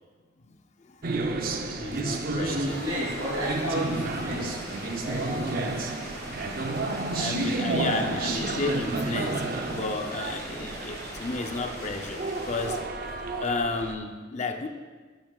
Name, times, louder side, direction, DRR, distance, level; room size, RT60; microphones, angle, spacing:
voice 1, 0.5-1.0 1.7-2.9 7.1-12.8 13.4-14.7, left 3 dB, 35° left, 6 dB, 0.5 m, -32 dB
sound 1, 1.0-13.9, right 3 dB, 45° right, 0.6 m, -31 dB
voice 2, 2.2-4.7 5.0-5.9 7.7-7.9, equal, 80° right, -10 dB, 2.8 m, -32 dB
sound 2, 2.6-12.8, left 1 dB, 15° left, 1.4 m, -42 dB
10.0 x 9.8 x 2.3 m, 1.4 s
head